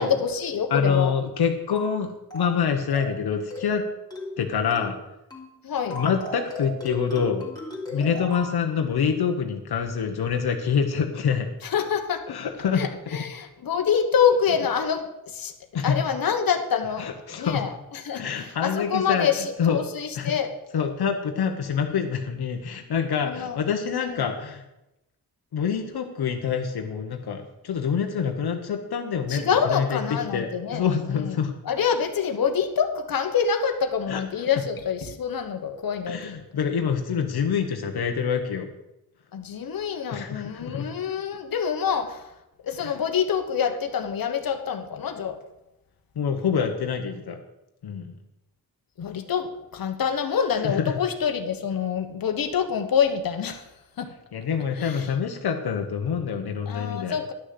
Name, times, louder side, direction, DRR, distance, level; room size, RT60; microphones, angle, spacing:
voice 1, 0.0-1.1 5.6-6.0 7.9-8.1 11.6-12.2 12.7-15.5 15.8-20.5 23.2-23.6 24.0-24.2 29.3-31.3 31.6-36.4 39.3-42.2 42.6-45.4 49.0-53.7 54.0-54.1 54.8-55.1 56.7-57.3, left 7 dB, 65° left, 6 dB, 1.3 m, -26 dB
voice 2, 0.7-3.8 4.4-5.0 5.9-7.5 7.9-11.5 12.3-13.2 15.7-16.0 17.0-17.6 18.1-19.3 19.6-19.8 20.2-20.3 20.7-24.6 25.5-30.0 30.3-31.5 34.1-34.2 36.1-38.7 40.1-40.9 42.8-43.0 46.2-47.4 47.8-48.1 50.6-50.9 54.3-57.2, left 7 dB, 85° left, 4 dB, 1.1 m, -26 dB
sound 1, 1.7-2.0 2.3-2.6 2.9-3.2 3.5-3.8 4.1-4.4 4.7-5.0 5.3-5.5 5.9-8.6, left 1 dB, 10° left, 3.0 m, -36 dB
11.0 x 6.5 x 7.7 m, 0.91 s
wide cardioid pair, 130°, 37 cm